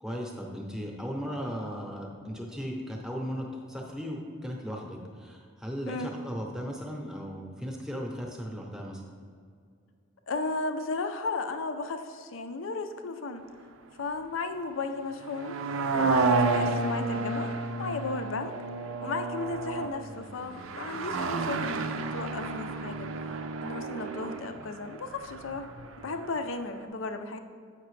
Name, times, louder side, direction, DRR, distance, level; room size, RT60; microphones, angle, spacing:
voice 1, 0.0-9.0 15.9-16.2, equal, 5° right, -1 dB, 0.7 m, -37 dB
voice 2, 10.3-13.4 14.0-15.5 16.0-17.5 17.8-18.5 19.0-23.1 23.6-25.7 26.0-27.4, left 3 dB, 75° left, 8 dB, 0.5 m, -34 dB
sound 1, 15.2-26.3 26.6-26.7, right 3 dB, 80° right, 0.5 m, -31 dB
7.7 x 5.8 x 3.2 m, 2.2 s
head